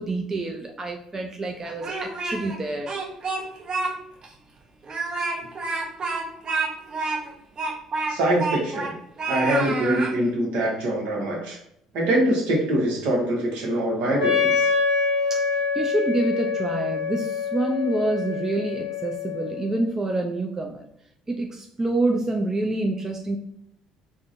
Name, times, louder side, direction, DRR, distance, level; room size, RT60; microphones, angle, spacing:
voice 1, 0.0-2.9 15.3-20.8 21.3-23.4, right 2 dB, 25° right, 2 dB, 0.4 m, -27 dB
Speech, 1.6-2.6 2.9-3.9 4.2-4.3 4.8-8.9 9.2-10.1, right 3 dB, 40° right, 0.8 m, -28 dB
voice 2, 8.1-8.9 9.3-11.6 11.9-14.7, right 1 dB, 65° right, -1 dB, 0.9 m, -24 dB
Wind instrument woodwind instrument, 14.2-19.8, left 5 dB, 85° left, 0.9 m, -25 dB
3.5 x 2.1 x 2.6 m, 0.72 s
figure-of-eight pair, 55°, 2 cm